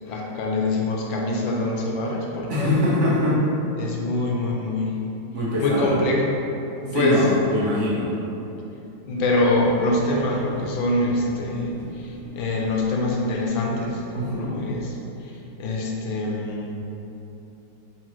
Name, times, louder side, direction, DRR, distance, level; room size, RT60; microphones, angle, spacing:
voice 1, 0.0-2.7 3.8-4.9 5.6-6.4 6.8-7.2 7.5-7.6 9.0-16.7, left 2 dB, 80° left, -1 dB, 1.4 m, -25 dB
voice 2, 2.5-3.4 5.3-6.0 6.9-8.1 14.1-14.6, left 1 dB, 55° right, -7 dB, 0.8 m, -23 dB
sound 1, 9.2-14.8, right 1 dB, 80° right, 1.4 m, -42 dB
4.5 x 3.7 x 2.9 m, 3.0 s
omnidirectional pair, 2.1 m